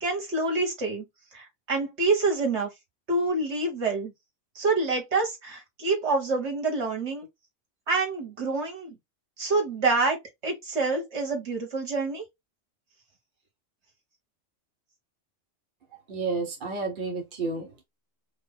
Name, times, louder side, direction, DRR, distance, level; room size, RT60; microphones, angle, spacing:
voice 1, 0.0-1.0 1.3-2.7 3.1-4.1 4.6-7.3 7.9-9.0 9.4-10.2 10.4-12.2, right 3 dB, 65° right, 1.9 m, -27 dB
voice 2, 16.1-17.8, right 4 dB, 45° right, 1.4 m, -31 dB
5.3 x 2.0 x 4.1 m
omnidirectional pair, 1.2 m